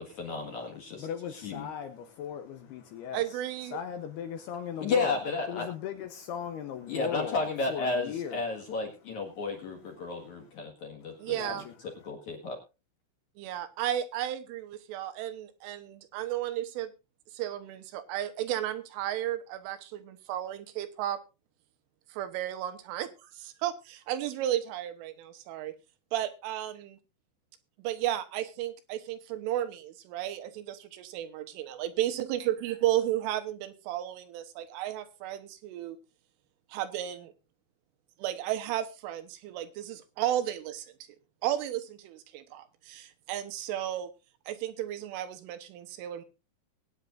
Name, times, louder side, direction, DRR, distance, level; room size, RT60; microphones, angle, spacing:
voice 1, 0.0-1.1 1.4-1.7 4.8-5.7 6.9-11.6 12.0-12.6, left 3 dB, 60° left, 2 dB, 2.1 m, -33 dB
voice 2, 0.9-5.2 5.5-8.4 9.5-9.6 9.9-10.4 11.0-12.1, left 8 dB, 80° left, 8 dB, 2.3 m, -39 dB
voice 3, 3.1-3.8 11.2-11.6 13.4-16.9 17.3-21.2 22.1-25.7 26.1-26.7 27.8-36.0 36.7-37.3 38.2-40.9 41.4-44.1 44.5-46.2, right 12 dB, 80° right, 9 dB, 3.5 m, -33 dB
21.0 x 9.7 x 2.6 m, 0.28 s
omnidirectional pair, 5.9 m